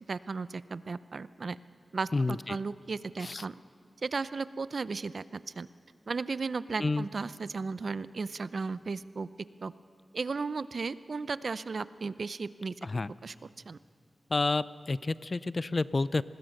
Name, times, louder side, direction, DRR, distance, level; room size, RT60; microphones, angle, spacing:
voice 1, 0.1-1.6 1.9-3.6 4.0-5.7 6.1-9.3 9.6-9.7 10.1-12.8 13.2-13.3 13.7-13.8, right 4 dB, 60° right, 16 dB, 0.6 m, -35 dB
voice 2, 2.1-2.6 3.2-3.4 6.8-7.1 12.8-13.1 14.3-16.2, left 3 dB, 40° left, 18 dB, 0.5 m, -29 dB
25.0 x 20.0 x 6.6 m, 2.3 s
wide cardioid pair, 85°, 0 cm